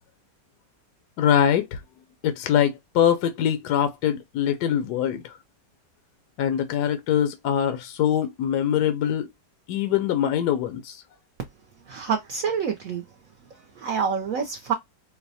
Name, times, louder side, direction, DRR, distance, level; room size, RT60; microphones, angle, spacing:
voice 1, 1.2-1.8 2.2-5.3 6.4-9.3 9.7-11.0, left 9 dB, 70° left, 1.1 m, -23 dB
voice 2, 11.9-13.0 13.5-14.7, right 6 dB, 65° right, 0.8 m, -27 dB
4.6 x 2.1 x 2.6 m
omnidirectional pair, 2.0 m